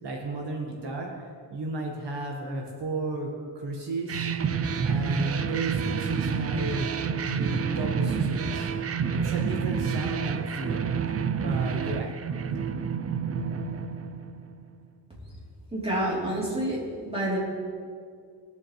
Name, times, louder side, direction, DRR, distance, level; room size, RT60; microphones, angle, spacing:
voice 1, 0.0-4.5 4.8-6.9 7.3-8.7 9.1-10.8 11.4-12.1, right 2 dB, 65° right, 0 dB, 1.6 m, -34 dB
sound 1, 4.1-14.6, right 6 dB, 35° right, 0.4 m, -28 dB
voice 2, 15.7-17.4, right 1 dB, 15° right, -7 dB, 3.4 m, -28 dB
21.5 x 7.4 x 3.3 m, 2.2 s
wide cardioid pair, 160°, 45 cm